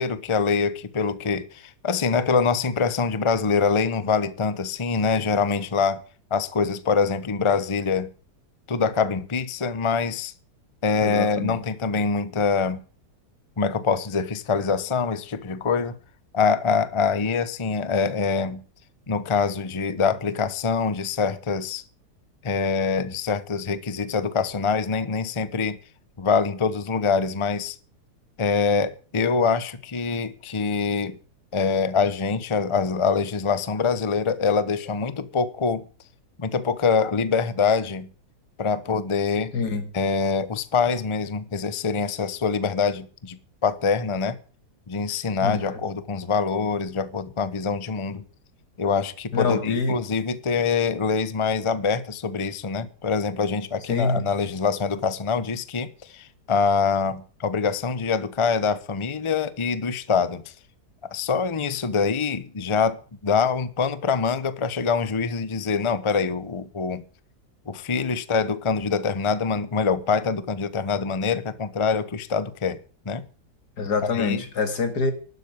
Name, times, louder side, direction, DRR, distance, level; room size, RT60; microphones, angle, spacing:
voice 1, 0.0-6.0 6.3-8.1 8.7-10.3 10.8-12.8 13.6-16.0 16.3-18.6 19.1-21.8 22.4-25.8 26.2-27.8 28.4-31.2 31.5-35.8 36.4-38.1 38.6-39.5 39.9-44.4 44.9-48.2 48.8-60.5 61.0-67.0 67.7-72.8 73.0-73.2 74.1-74.4, left 5 dB, 25° left, 0.7 m, -24 dB
voice 2, 11.0-11.6 39.5-39.9 45.4-45.8 49.3-50.0 53.9-54.3 73.8-75.1, left 4 dB, 80° left, 2.6 m, -25 dB
12.0 x 8.0 x 8.6 m
omnidirectional pair, 1.7 m